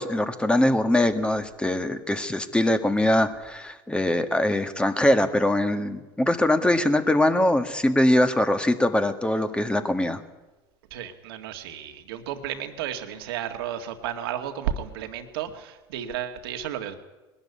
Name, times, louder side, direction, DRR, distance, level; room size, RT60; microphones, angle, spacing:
voice 1, 0.0-10.2, left 1 dB, 10° left, 9 dB, 1.7 m, -22 dB
voice 2, 10.9-17.0, right 10 dB, 80° right, 6 dB, 2.0 m, -33 dB
20.5 x 13.0 x 9.8 m, 1.1 s
hypercardioid pair, 90°, 12 cm